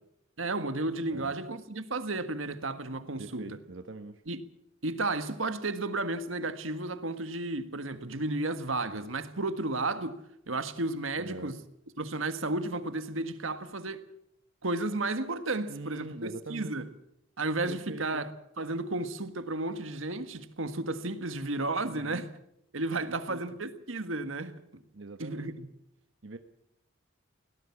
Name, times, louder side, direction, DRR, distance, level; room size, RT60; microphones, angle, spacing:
voice 1, 0.4-3.6 4.3-4.4 4.8-10.2 10.5-11.6 12.0-14.1 14.6-16.9 17.4-18.3 18.6-22.3 22.7-24.6 25.2-25.7, right 2 dB, 85° right, 1.6 m, -33 dB
voice 2, 3.2-4.2 11.2-11.5 15.7-16.8 17.7-18.2 21.9-22.3 23.1-23.4 24.9-25.5 26.2-26.4, right 3 dB, 70° right, 1.1 m, -43 dB
22.0 x 18.0 x 7.2 m
head